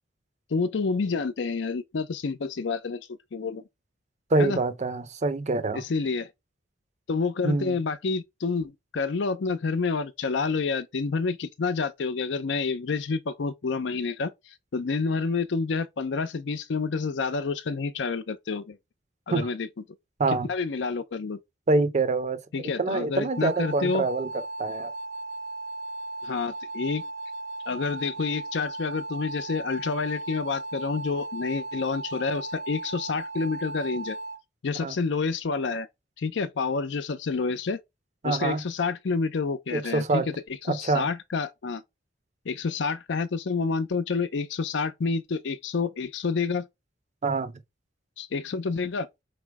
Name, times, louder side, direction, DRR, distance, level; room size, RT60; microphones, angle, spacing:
voice 1, 0.5-3.6 4.4-4.6 5.7-6.3 7.1-14.3 14.7-18.8 19.3-19.7 20.5-21.4 22.5-24.1 26.2-27.0 27.7-34.2 34.6-35.9 36.2-37.8 38.2-40.3 40.7-41.8 42.5-46.7 48.2-49.1, left 4 dB, 70° left, 0.5 m, -28 dB
voice 2, 4.3-5.8 7.4-7.8 19.3-19.5 20.2-20.5 21.7-24.3 24.6-24.9 34.8-35.0 38.2-38.6 39.7-40.3 40.7-41.1 47.2-47.5, right 3 dB, 40° right, 0.5 m, -25 dB
sound 1, 23.1-34.4, right 2 dB, 85° right, 1.0 m, -36 dB
4.6 x 2.1 x 4.6 m
head